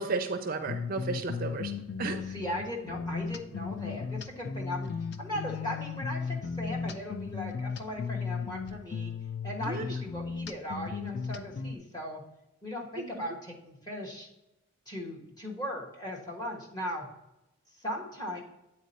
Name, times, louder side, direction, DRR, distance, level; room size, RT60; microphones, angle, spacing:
voice 1, 0.0-1.7 2.0-2.3 9.7-10.0 13.0-13.2, right 3 dB, 40° right, 8 dB, 0.4 m, -33 dB
sound 1, 0.6-11.8, left 5 dB, 50° left, 0.4 m, -36 dB
voice 2, 2.1-4.9 5.2-9.1 9.4-12.2 12.6-14.3 14.9-17.1 17.7-18.4, left 1 dB, 20° left, -1 dB, 1.3 m, -38 dB
8.5 x 4.2 x 4.1 m, 0.94 s
head